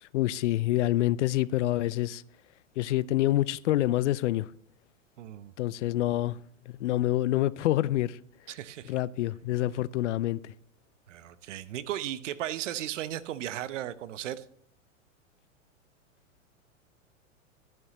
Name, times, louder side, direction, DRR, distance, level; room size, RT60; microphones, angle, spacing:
voice 1, 0.0-2.2 2.8-4.5 5.6-6.4 6.7-8.2 8.8-10.5, left 14 dB, 65° left, 0.6 m, -27 dB
voice 2, 5.2-5.5 8.5-9.0 11.1-14.4, right 12 dB, 65° right, 1.0 m, -36 dB
12.5 x 10.5 x 3.0 m
hypercardioid pair, 110°, 39 cm